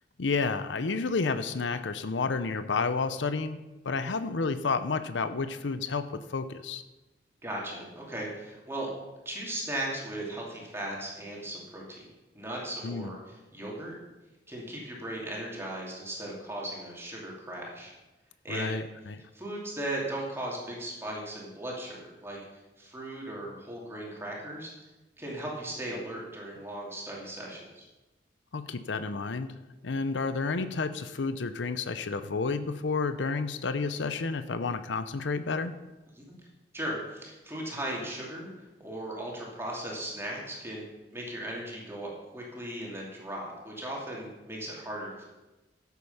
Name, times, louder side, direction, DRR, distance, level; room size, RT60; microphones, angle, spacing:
voice 1, 0.2-6.8 12.8-13.1 18.5-19.3 28.5-29.6 29.8-35.7, left 4 dB, 85° left, 11 dB, 0.7 m, -31 dB
voice 2, 7.4-8.9 9.2-12.1 12.3-13.2 13.5-13.9 14.5-17.9 18.4-18.8 19.3-22.4 22.8-24.7 25.2-27.9 36.2-36.3 36.7-38.5 38.8-40.8 41.1-45.2, right 1 dB, 15° right, -3 dB, 2.8 m, -37 dB
13.5 x 8.2 x 5.6 m, 1.1 s
head